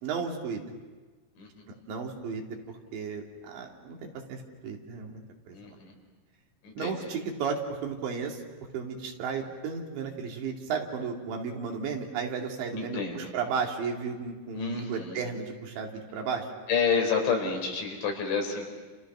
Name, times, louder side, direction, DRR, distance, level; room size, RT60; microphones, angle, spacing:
voice 1, 0.0-0.6 1.9-2.6 2.9-5.8 6.8-8.4 8.7-16.5, right 5 dB, 75° right, 1 dB, 4.8 m, -34 dB
voice 2, 5.5-5.9 6.6-6.9 12.7-13.3 14.5-15.2 16.7-18.6, left 5 dB, 80° left, 2 dB, 6.7 m, -29 dB
29.5 x 29.5 x 6.2 m, 1.3 s
omnidirectional pair, 5.2 m